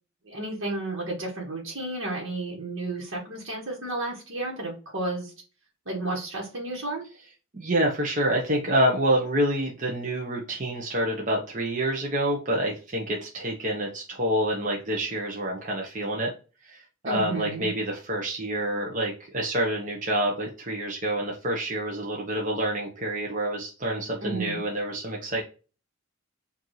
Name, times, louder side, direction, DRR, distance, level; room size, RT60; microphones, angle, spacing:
voice 1, 0.2-5.3 5.8-7.1 17.0-17.7 24.2-24.6, right 2 dB, 60° right, -2 dB, 1.4 m, -32 dB
voice 2, 7.5-16.3 16.6-25.4, right 1 dB, 35° right, -1 dB, 0.8 m, -27 dB
5.0 x 2.7 x 3.0 m, 0.34 s
head